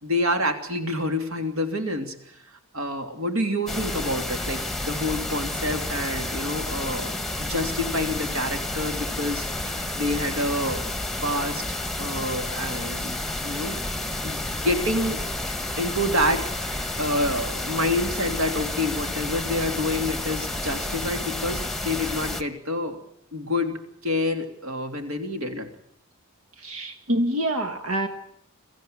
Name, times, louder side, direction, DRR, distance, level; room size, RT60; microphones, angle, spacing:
voice 1, 0.0-2.4 2.7-10.9 11.2-13.2 13.4-13.8 14.2-15.2 15.8-23.0 23.3-25.7, left 1 dB, 75° right, 6 dB, 3.2 m, -28 dB
sound 1, 3.7-22.4, left 2 dB, ahead, 1.2 m, -30 dB
voice 2, 26.6-28.1, right 1 dB, 90° right, 8 dB, 1.6 m, -26 dB
23.5 x 15.0 x 9.4 m, 0.75 s
head